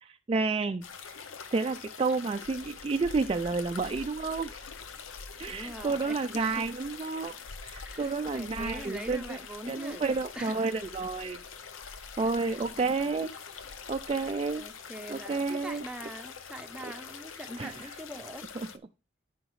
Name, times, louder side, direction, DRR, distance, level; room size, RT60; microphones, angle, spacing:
voice 1, 0.0-1.2 1.5-4.6 5.4-7.4 7.6-9.4 9.7-11.4 12.2-13.3 13.9-14.6 15.1-15.8 16.8-16.9 17.6-17.9, right 4 dB, 30° right, 0.3 m, -30 dB
sound 1, 0.8-18.8, left 5 dB, 90° left, 0.7 m, -44 dB
voice 2, 5.5-6.6 7.8-10.1 10.4-10.9 12.2-12.4 12.7-13.1 14.2-14.3 14.6-18.5, right 1 dB, 5° right, 0.7 m, -43 dB
13.5 x 5.0 x 3.1 m
head